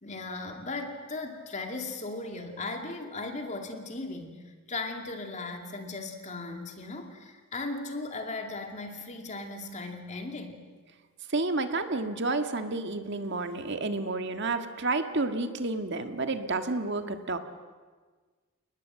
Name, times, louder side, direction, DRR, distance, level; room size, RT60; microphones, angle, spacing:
voice 1, 0.0-10.6, left 3 dB, 35° left, 4 dB, 2.5 m, -37 dB
voice 2, 11.3-17.4, right 3 dB, 55° right, 7 dB, 1.7 m, -30 dB
29.5 x 20.0 x 7.6 m, 1.4 s
head